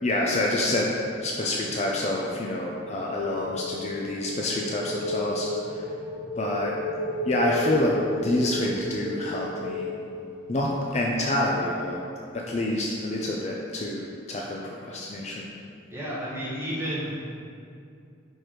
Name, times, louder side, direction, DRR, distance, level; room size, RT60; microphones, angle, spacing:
voice 1, 0.0-0.9 1.2-5.9 6.4-6.7 7.3-9.9 10.5-12.0 12.3-15.5, left 1 dB, 35° left, -2 dB, 0.5 m, -27 dB
sound 1, 2.5-10.9, left 1 dB, 60° left, 1.2 m, -34 dB
voice 2, 15.9-17.2, equal, 10° right, -8 dB, 1.3 m, -31 dB
4.9 x 4.5 x 4.5 m, 2.4 s
head